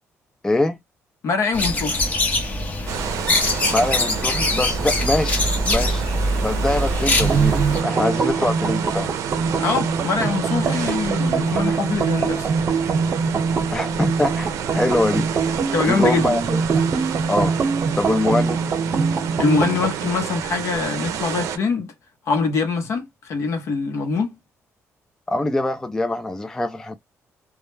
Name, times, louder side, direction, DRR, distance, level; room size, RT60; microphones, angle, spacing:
voice 1, 0.4-0.8 3.7-6.0 6.4-9.1 13.7-14.5 14.7-15.3 15.8-16.8 17.3-17.5 17.9-18.6 25.3-27.0, left 2 dB, 10° left, 0.3 m, -23 dB
voice 2, 1.2-2.0 9.6-12.5 15.7-16.3 19.4-21.9 22.3-24.4, left 4 dB, 65° left, 0.8 m, -23 dB
sound 1, 1.5-7.8, left 1 dB, 30° left, 0.7 m, -22 dB
sound 2, 2.9-21.6, right 9 dB, 80° right, 0.5 m, -30 dB
sound 3, 7.2-20.0, right 5 dB, 40° right, 0.8 m, -23 dB
2.2 x 2.1 x 3.1 m
cardioid pair, 120°, 5 cm